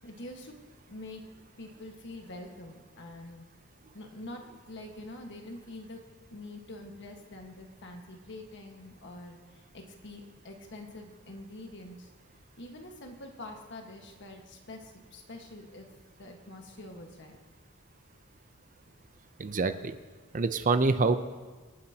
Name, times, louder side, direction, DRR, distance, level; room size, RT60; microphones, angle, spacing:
voice 1, 0.0-0.5 0.9-1.2 1.6-3.4 3.9-6.0 6.3-9.4 9.7-12.1 12.6-15.9 16.2-17.3, left 1 dB, 60° left, 2 dB, 1.5 m, -45 dB
voice 2, 19.4-19.9 20.3-21.2, right 3 dB, 40° right, 10 dB, 0.6 m, -26 dB
25.5 x 9.4 x 2.9 m, 1.4 s
head